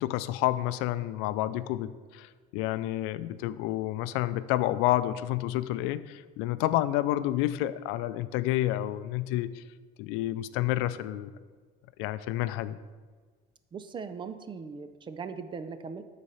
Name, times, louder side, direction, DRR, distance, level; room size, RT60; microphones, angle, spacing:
voice 1, 0.0-9.6 10.0-11.3 12.0-12.8, left 14 dB, 85° left, 14 dB, 0.4 m, -29 dB
voice 2, 13.7-16.0, right 5 dB, 25° right, 10 dB, 0.4 m, -39 dB
10.5 x 4.1 x 5.5 m, 1.5 s
cardioid pair, 155°, 21 cm